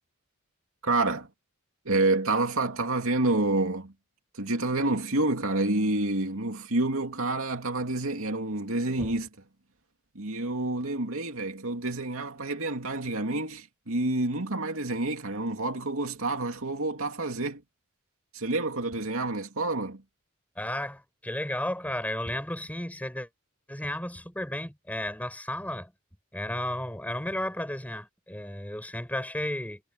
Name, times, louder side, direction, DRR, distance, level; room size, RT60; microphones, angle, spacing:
voice 1, 0.8-1.3 1.8-3.9 4.3-9.3 10.1-17.6 18.3-20.0, right 2 dB, 70° right, 2.8 m, -28 dB
voice 2, 20.6-23.3 23.7-25.9 26.3-29.8, left 1 dB, 5° left, 5.7 m, -33 dB
head